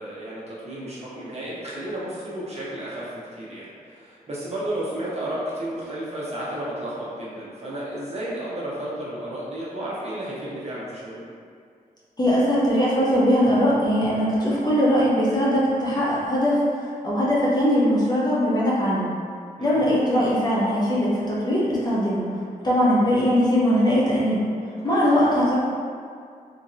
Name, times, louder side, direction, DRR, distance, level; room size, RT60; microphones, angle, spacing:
voice 1, 0.0-11.2 19.6-19.8 24.8-25.0, right 1 dB, 45° right, -7 dB, 0.7 m, -32 dB
voice 2, 12.2-16.6 17.0-19.1 19.6-22.2 22.6-24.4 24.8-25.6, equal, 25° left, -8 dB, 0.7 m, -20 dB
2.9 x 2.6 x 2.6 m, 2.2 s
wide cardioid pair, 120°, 15 cm